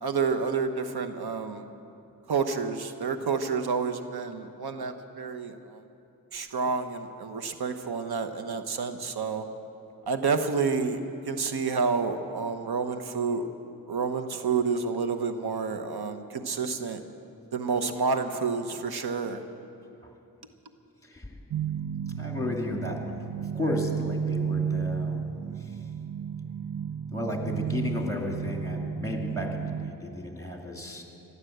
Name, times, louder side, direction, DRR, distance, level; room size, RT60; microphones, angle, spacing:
voice 1, 0.0-1.6 2.3-5.8 6.3-9.4 10.1-11.0 11.3-13.5 13.9-17.0 17.5-19.4, right 5 dB, 90° right, 8 dB, 1.0 m, -29 dB
voice 2, 21.0-21.4 22.2-25.8 27.1-31.0, left 2 dB, 10° left, 1 dB, 2.6 m, -34 dB
sound 1, 21.5-29.9, right 7 dB, 60° right, 0.7 m, -32 dB
15.0 x 11.0 x 7.9 m, 2.7 s
cardioid pair, 60°, 37 cm